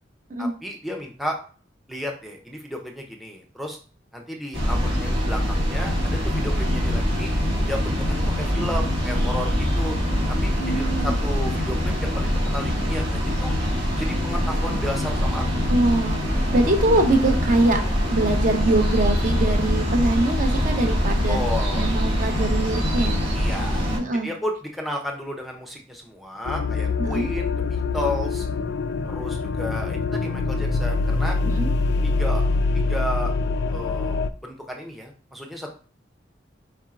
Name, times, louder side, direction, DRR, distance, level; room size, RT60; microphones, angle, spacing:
voice 1, 0.4-1.4 1.9-3.8 4.1-7.3 7.7-10.0 10.3-13.5 14.0-15.7 16.5-16.7 21.3-21.8 23.3-28.5 29.0-31.4 32.0-32.4 32.7-33.3 33.7-35.7, left 1 dB, ahead, 2 dB, 0.5 m, -33 dB
sound 1, 4.5-24.0, equal, 85° right, 1.9 m, -23 dB
voice 2, 10.6-11.1 15.7-21.4 21.8-23.2 24.0-24.3 27.0-27.3 31.5-31.7, right 2 dB, 45° right, 4 dB, 0.8 m, -23 dB
sound 2, 26.5-34.3, left 3 dB, 60° left, 0.3 m, -24 dB
4.7 x 4.3 x 2.4 m, 0.40 s
head